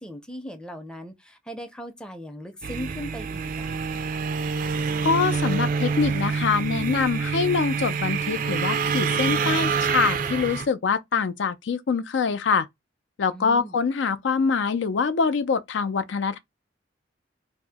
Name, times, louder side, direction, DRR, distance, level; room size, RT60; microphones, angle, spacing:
voice 1, 0.0-3.9 13.3-13.8, equal, 5° left, 0.5 m, -38 dB
sound 1, 2.6-10.7, right 5 dB, 50° right, 0.4 m, -26 dB
voice 2, 5.0-12.7 13.2-16.4, left 5 dB, 75° left, 0.4 m, -24 dB
2.7 x 2.0 x 3.4 m
head